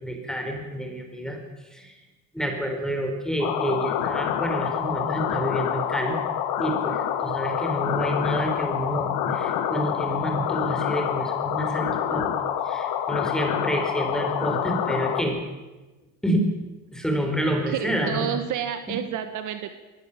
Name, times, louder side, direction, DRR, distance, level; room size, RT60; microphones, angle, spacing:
voice 1, 0.0-1.4 1.7-1.9 2.3-6.2 6.6-12.3 12.6-15.4 16.2-16.5 16.9-18.3, equal, ahead, 3 dB, 4.7 m, -28 dB
sound 1, 3.4-15.2, left 9 dB, 65° left, 2.4 m, -27 dB
voice 2, 17.7-19.8, right 9 dB, 50° right, 8 dB, 1.9 m, -30 dB
22.5 x 17.5 x 7.6 m, 1.1 s
cardioid pair, 135°, 38 cm